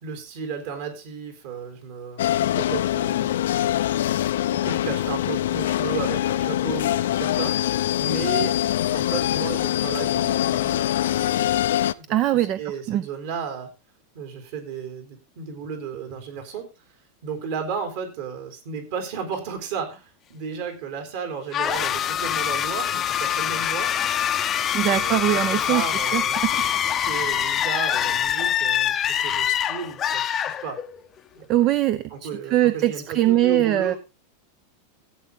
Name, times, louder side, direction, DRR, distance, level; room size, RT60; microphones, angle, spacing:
voice 1, 0.0-3.3 4.5-7.7 8.0-8.5 8.8-11.6 12.0-13.7 14.1-16.7 17.2-23.9 24.9-30.8 31.3-31.7 32.1-34.0, right 6 dB, 50° right, 3.9 m, -34 dB
sound 1, 2.2-11.9, left 12 dB, 85° left, 0.6 m, -23 dB
voice 2, 12.1-12.6 12.9-13.1 24.7-25.8 26.1-27.0 31.5-33.9, right 13 dB, 30° right, 0.5 m, -22 dB
sound 2, 21.5-31.1, left 9 dB, 20° left, 0.7 m, -24 dB
15.5 x 8.3 x 3.7 m
supercardioid pair, 170°, 0 cm